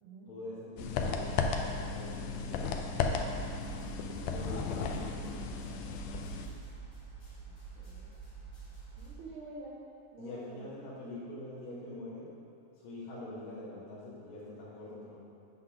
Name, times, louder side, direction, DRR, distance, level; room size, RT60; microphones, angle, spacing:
voice 1, 0.3-3.4 4.0-5.6 10.2-12.4 12.7-15.3, left 1 dB, 70° left, -8 dB, 2.3 m, -45 dB
sound 1, 0.8-6.5, left 4 dB, 85° left, 2.0 m, -34 dB
sound 2, 3.3-9.1, right 5 dB, 45° left, 1.1 m, -48 dB
voice 2, 7.5-8.1 9.0-9.8 10.1-10.7, right 2 dB, 75° right, -6 dB, 1.2 m, -48 dB
8.2 x 3.8 x 5.7 m, 2.8 s
omnidirectional pair, 3.4 m